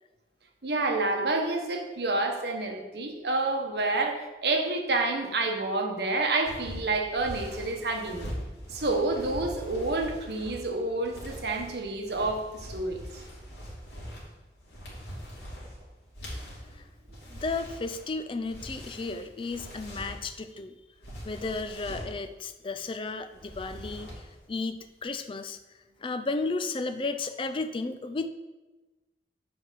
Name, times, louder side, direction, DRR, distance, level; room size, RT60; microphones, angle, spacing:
voice 1, 0.6-8.3 8.7-13.0, right 2 dB, 70° right, 3 dB, 1.1 m, -29 dB
sound 1, 6.4-20.4 20.9-22.2 23.3-24.4 24.7-25.0, equal, 75° left, 2.7 m, -42 dB
voice 2, 17.3-20.8 21.2-25.6 26.0-28.3, left 3 dB, 30° left, 9 dB, 0.4 m, -33 dB
7.9 x 4.7 x 5.6 m, 1.1 s
head